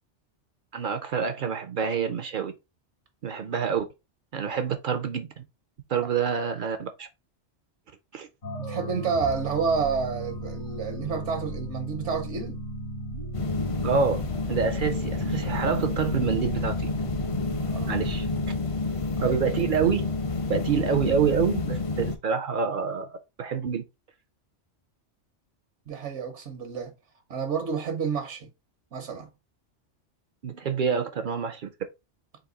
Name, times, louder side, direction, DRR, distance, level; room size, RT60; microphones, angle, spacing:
voice 1, 0.7-2.5 3.2-3.8 4.3-5.4 5.9-7.1 8.1-8.3 13.8-14.2 14.5-16.9 17.9-18.3 19.2-20.1 20.5-23.8 30.4-31.7, right 6 dB, 60° right, 0.6 m, -27 dB
sound 1, 8.4-18.5, right 2 dB, 70° left, 2.1 m, -36 dB
voice 2, 8.6-12.6 17.7-18.0 19.2-19.4 25.9-26.9 27.3-28.5 28.9-29.3, right 6 dB, 80° right, 1.2 m, -30 dB
sound 2, 13.3-22.2, left 3 dB, 45° left, 0.4 m, -29 dB
4.0 x 2.6 x 3.8 m
omnidirectional pair, 1.2 m